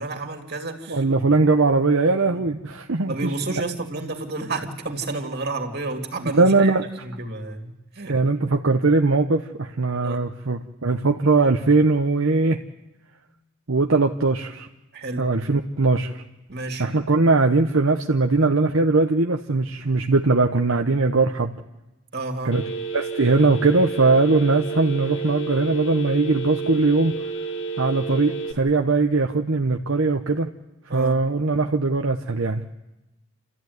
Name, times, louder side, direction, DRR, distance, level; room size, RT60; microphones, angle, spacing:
voice 1, 0.0-1.0 2.2-2.5 3.1-8.2 10.0-10.3 14.9-15.3 16.5-16.9 22.1-22.6 30.9-31.2, right 2 dB, 50° right, 4 dB, 2.8 m, -31 dB
voice 2, 0.9-3.3 6.2-6.8 8.1-12.6 13.7-14.7 15.2-16.2 16.8-21.5 22.4-22.6 22.9-27.1 27.8-30.5 30.9-32.6, right 3 dB, 70° right, 3 dB, 1.0 m, -20 dB
Telephone, 22.5-28.5, right 4 dB, 60° left, 2.4 m, -30 dB
30.0 x 14.0 x 9.5 m, 1.0 s
head